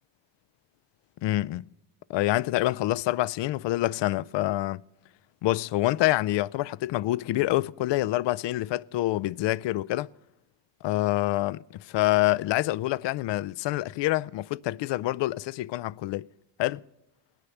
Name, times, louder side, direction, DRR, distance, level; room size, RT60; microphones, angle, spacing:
voice 1, 1.2-1.6 2.1-4.8 5.4-10.1 10.8-16.3 16.6-16.8, left 16 dB, 65° left, 0.5 m, -26 dB
19.0 x 10.0 x 7.0 m
cardioid pair, 120°, 48 cm